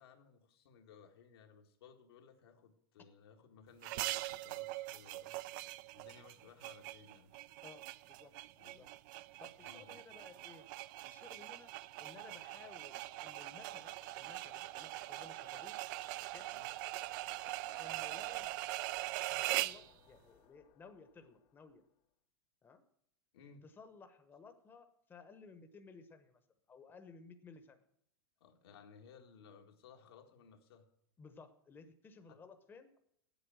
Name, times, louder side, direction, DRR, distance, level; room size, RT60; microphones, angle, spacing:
voice 1, 0.0-5.4 5.9-7.3 8.6-8.9 9.6-10.0 16.5-16.7 23.3-23.6 28.4-30.9 32.3-32.4, left 6 dB, 85° left, 3 dB, 1.8 m, -60 dB
sound 1, 3.8-19.9, right 18 dB, 55° right, 0.4 m, -42 dB
voice 2, 7.6-8.3 8.6-8.9 9.4-10.7 11.1-11.7 12.0-15.8 16.3-16.5 17.8-18.6 19.3-21.8 22.6-22.8 23.6-26.4 26.7-27.8 31.2-33.0, left 4 dB, 15° left, 8 dB, 0.9 m, -57 dB
sound 2, 11.4-22.0, left 11 dB, 50° left, 0.8 m, -66 dB
8.2 x 8.1 x 7.7 m, 0.72 s
supercardioid pair, 135°, 13 cm